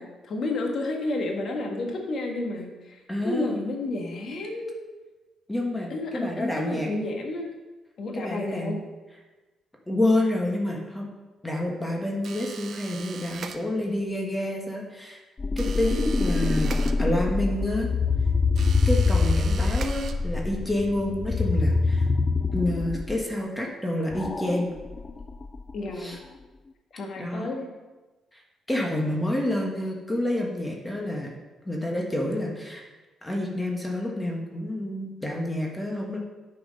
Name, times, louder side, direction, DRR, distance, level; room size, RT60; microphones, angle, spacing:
voice 1, 0.0-4.8 5.9-7.5 8.0-8.8 25.7-26.2 26.9-27.7, left 2 dB, 60° left, 2 dB, 1.6 m, -31 dB
voice 2, 3.1-3.6 5.5-6.9 8.1-8.8 9.9-11.1 11.4-15.2 15.6-17.9 18.8-22.0 22.5-24.7 26.0-26.2 27.2-27.5 28.3-28.4 28.7-31.3 31.6-32.8 33.2-36.2, left 1 dB, 10° left, -1 dB, 1.5 m, -28 dB
sound 1, 12.2-14.1 15.6-17.5 18.5-20.6, right 6 dB, 60° right, 0.6 m, -41 dB
sound 2, 15.4-23.2 24.1-25.9, left 4 dB, 30° left, 0.4 m, -25 dB
8.9 x 4.8 x 5.3 m, 1.2 s
cardioid pair, 90°, 0 cm